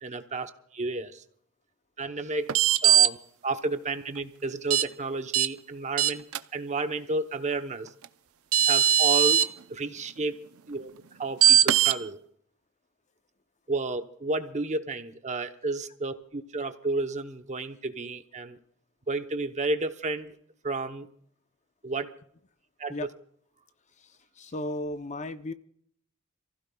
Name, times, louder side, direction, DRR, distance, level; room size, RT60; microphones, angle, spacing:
voice 1, 0.0-1.2 2.0-2.5 2.8-3.2 3.4-6.2 6.5-7.9 8.7-9.4 9.7-10.3 10.7-10.9 11.2-12.2 13.7-18.6 19.1-20.4 20.6-21.1 21.8-22.1 22.8-23.1, right 3 dB, 35° right, 0.9 m, -31 dB
sound 1, 2.5-3.1 4.7-4.8 5.3-5.5 6.0-6.4 8.0-8.1 8.5-9.5 11.4-12.0, right 10 dB, 70° right, 0.6 m, -20 dB
voice 2, 24.4-25.5, left 2 dB, 35° left, 0.6 m, -34 dB
27.5 x 15.5 x 2.3 m
head